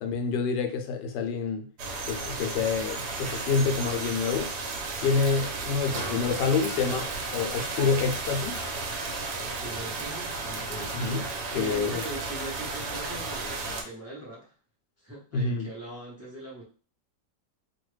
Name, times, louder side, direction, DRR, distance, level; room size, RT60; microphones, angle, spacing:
voice 1, 0.0-1.7 2.1-4.5 5.0-8.6 10.9-11.3 11.5-12.0 15.3-15.7, left 5 dB, 80° left, 1.2 m, -27 dB
sound 1, 1.8-13.8, right 3 dB, 75° right, 1.2 m, -34 dB
voice 2, 9.4-11.0 11.5-14.5 15.0-16.6, right 1 dB, 20° right, 0.3 m, -41 dB
3.0 x 2.2 x 3.1 m
omnidirectional pair, 1.9 m